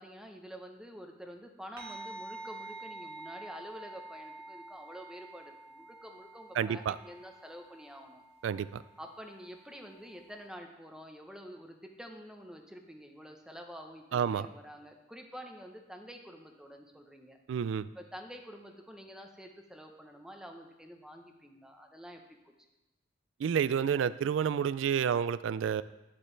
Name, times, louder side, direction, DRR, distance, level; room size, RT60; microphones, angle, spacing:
voice 1, 0.0-8.2 9.0-17.4 17.9-22.5, equal, 5° right, 3 dB, 0.9 m, -48 dB
sound 1, 1.8-10.5, right 2 dB, 55° right, 1.6 m, -48 dB
voice 2, 6.6-7.0 8.4-8.8 14.1-14.5 17.5-17.9 23.4-25.8, right 8 dB, 75° right, 16 dB, 0.3 m, -29 dB
11.5 x 7.6 x 3.3 m, 1.0 s
head